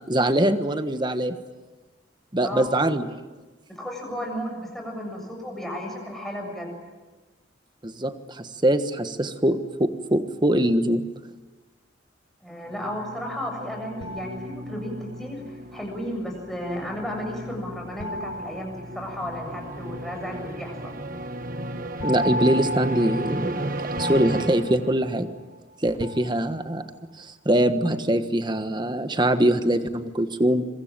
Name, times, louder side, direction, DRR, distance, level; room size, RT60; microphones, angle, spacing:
voice 1, 0.1-1.4 2.3-3.1 7.8-11.1 22.0-23.7 24.0-25.3 25.8-26.8 27.2-30.6, right 1 dB, 25° right, 9 dB, 1.4 m, -23 dB
voice 2, 2.4-2.8 3.7-6.7 12.4-21.0, equal, ahead, 1 dB, 7.4 m, -34 dB
sound 1, 12.7-25.3, right 1 dB, 45° right, 1.3 m, -35 dB
sound 2, 14.0-15.2 18.0-19.6 22.0-25.6 26.0-26.9, left 1 dB, 85° left, 1.5 m, -34 dB
26.5 x 23.5 x 9.0 m, 1.3 s
head